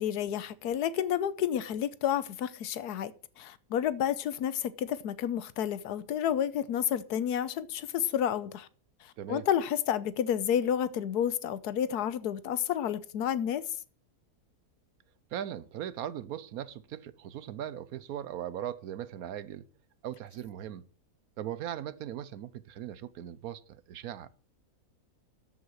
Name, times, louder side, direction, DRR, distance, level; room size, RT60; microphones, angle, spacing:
voice 1, 0.0-8.7 9.0-13.6, left 9 dB, 85° left, 1.3 m, -30 dB
voice 2, 15.3-19.7 20.0-20.9 21.4-24.3, right 11 dB, 70° right, 1.1 m, -39 dB
13.5 x 5.6 x 6.3 m
omnidirectional pair, 1.7 m